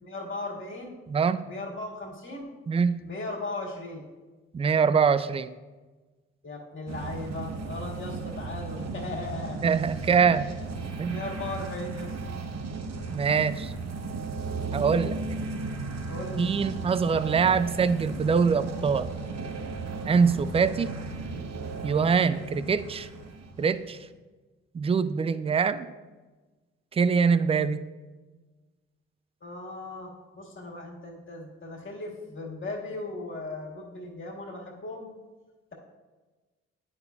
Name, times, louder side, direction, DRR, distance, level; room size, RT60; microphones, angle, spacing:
voice 1, 0.0-1.0 1.5-2.5 3.0-4.0 6.4-9.6 10.0-10.2 11.1-12.2 16.1-16.5 29.4-35.1, left 2 dB, 45° left, -2 dB, 1.8 m, -37 dB
voice 2, 1.1-1.5 2.7-3.1 4.5-5.5 9.6-10.5 11.0-11.2 13.1-13.7 14.7-15.2 16.4-19.1 20.1-21.0 21.8-23.1 23.6-24.0 24.7-25.9 26.9-27.9, right 5 dB, 20° right, 14 dB, 0.3 m, -24 dB
sound 1, 6.9-24.0, right 3 dB, 60° right, 0.8 m, -35 dB
9.3 x 5.3 x 2.4 m, 1.3 s
hypercardioid pair, 45°, 29 cm